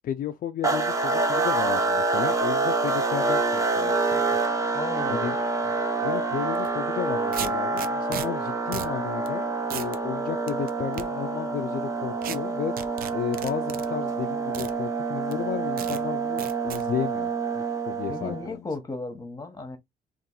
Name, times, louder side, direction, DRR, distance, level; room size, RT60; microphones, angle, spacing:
voice 1, 0.0-4.3 5.1-5.4 6.0-12.7 13.1-17.3 17.5-18.7, left 10 dB, 60° left, 0.4 m, -33 dB
sound 1, 0.6-18.5, right 3 dB, 20° right, 0.8 m, -27 dB
voice 2, 4.7-5.3 5.6-5.7 18.1-19.8, left 3 dB, 25° left, 1.0 m, -34 dB
sound 2, 6.5-6.7 7.3-8.3 8.7-8.9 9.3-9.4 9.7-10.0 10.5-11.0 12.2-12.4 12.8-13.9 14.5-14.7 15.3-15.4 15.8-16.0 16.4-16.8, right 10 dB, 65° right, 0.4 m, -35 dB
2.6 x 2.6 x 3.9 m
cardioid pair, 80°, 16 cm